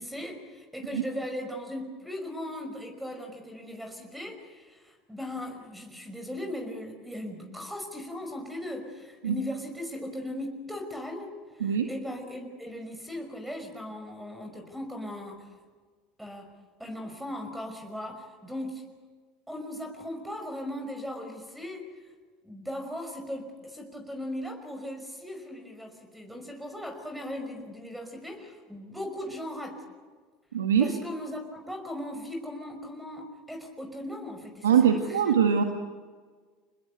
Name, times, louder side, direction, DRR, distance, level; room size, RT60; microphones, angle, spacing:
voice 1, 0.0-15.5 16.2-16.5 16.8-18.9 19.5-21.9 22.4-29.8 30.8-34.7 35.1-35.4, left 1 dB, 5° right, 5 dB, 5.4 m, -38 dB
voice 2, 30.5-30.9 34.6-35.6, right 8 dB, 90° right, 5 dB, 1.8 m, -22 dB
27.0 x 20.5 x 8.2 m, 1.5 s
hypercardioid pair, 80°, 0 cm